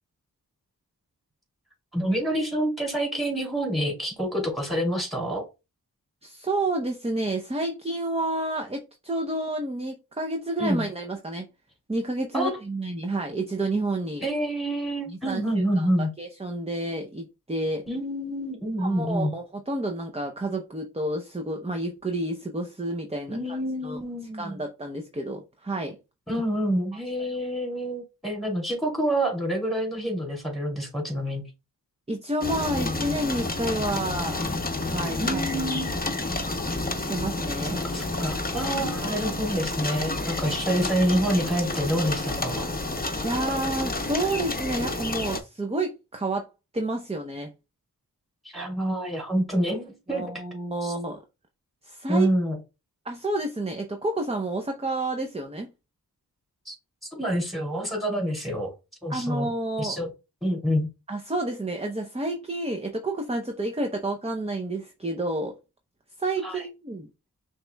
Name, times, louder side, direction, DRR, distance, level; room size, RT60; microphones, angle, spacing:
voice 1, 1.9-5.4 10.6-10.9 12.3-12.5 14.2-16.1 17.9-19.3 23.3-24.6 26.3-31.5 35.2-36.0 37.8-42.7 48.5-50.2 50.8-50.9 52.1-52.6 56.7-56.8 57.1-58.7 59.0-59.5 59.8-60.1 60.4-60.9 66.4-66.6, equal, ahead, 2.7 m, -27 dB
voice 2, 6.2-11.5 11.9-14.2 15.1-15.9 16.2-17.8 18.8-23.4 23.8-24.0 24.4-26.0 27.2-27.3 32.1-34.4 34.8-35.4 37.0-37.8 38.9-39.2 43.2-46.5 46.7-47.5 50.1-51.2 51.8-52.3 53.0-55.7 59.1-60.0 61.1-65.5 66.2-67.1, right 2 dB, 15° right, 0.7 m, -30 dB
sound 1, 32.4-45.4, left 2 dB, 25° left, 0.8 m, -30 dB
5.8 x 3.0 x 2.3 m
cardioid pair, 40°, 39 cm